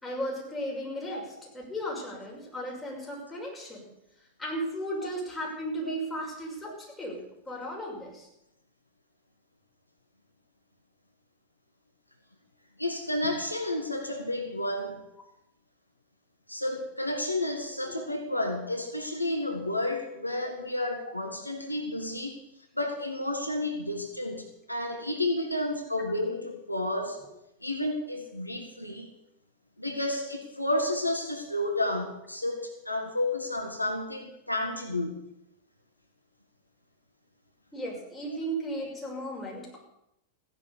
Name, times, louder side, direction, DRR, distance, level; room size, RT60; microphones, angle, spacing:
voice 1, 0.0-1.2 1.5-3.8 4.4-7.2 7.5-8.3 17.8-17.9 37.7-39.8, equal, 10° left, -2 dB, 6.2 m, -35 dB
voice 2, 12.8-15.0 16.5-22.4 22.7-27.2 27.6-29.1 29.8-35.3, left 1 dB, 85° left, 5 dB, 1.6 m, -31 dB
15.5 x 10.5 x 6.9 m, 0.82 s
figure-of-eight pair, 90°, 0 cm